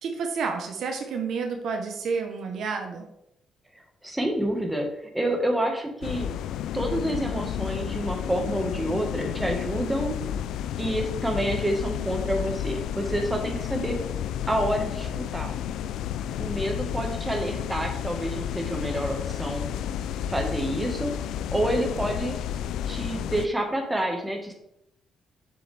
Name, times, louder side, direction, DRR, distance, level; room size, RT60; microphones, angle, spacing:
voice 1, 0.0-3.0, right 5 dB, 70° right, 4 dB, 1.1 m, -30 dB
voice 2, 4.0-4.9 5.1-6.3 6.7-10.2 10.8-14.1 14.5-15.6 16.4-19.7 20.3-21.2 21.5-22.4 22.9-24.5, right 1 dB, 10° right, 2 dB, 1.7 m, -28 dB
sound 1, 6.0-23.5, left 10 dB, 85° left, 0.3 m, -31 dB
7.2 x 7.1 x 3.5 m, 0.81 s
cardioid pair, 90°, 0 cm